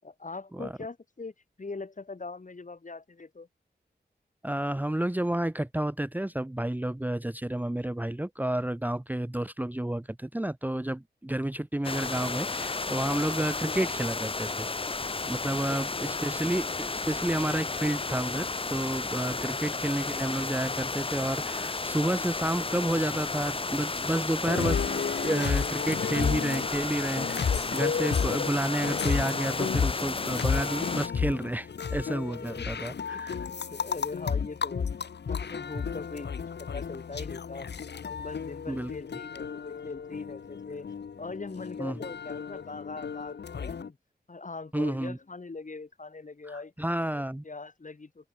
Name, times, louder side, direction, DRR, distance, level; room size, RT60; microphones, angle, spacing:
voice 1, 0.0-3.5 15.4-16.7 19.3-19.7 32.4-32.7 33.1-37.7 38.0-40.9 41.2-44.0 44.3-46.7 47.1-48.3, left 3 dB, 45° left, 7.4 m, -42 dB
voice 2, 4.4-14.7 15.3-33.3 38.7-38.9 41.8-42.0 44.7-45.2 46.5-47.4, right 1 dB, 10° right, 1.0 m, -30 dB
sound 1, 11.8-31.1, left 3 dB, 30° left, 0.9 m, -33 dB
sound 2, 24.4-43.9, left 6 dB, 80° left, 1.7 m, -33 dB
open air
cardioid pair, 65°, 17 cm